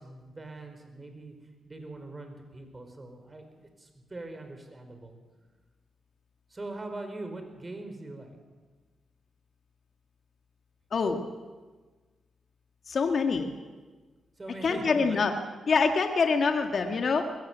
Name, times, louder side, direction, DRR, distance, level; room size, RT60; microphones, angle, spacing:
voice 1, 0.0-1.3 1.6-5.2 6.5-8.4 14.4-15.3, right 2 dB, 30° right, 6 dB, 4.8 m, -42 dB
voice 2, 10.9-11.2 12.9-13.5 14.6-15.3 15.7-17.3, left 4 dB, 55° left, 5 dB, 1.8 m, -25 dB
21.5 x 15.5 x 8.1 m, 1.4 s
cardioid pair, 65°, 0 cm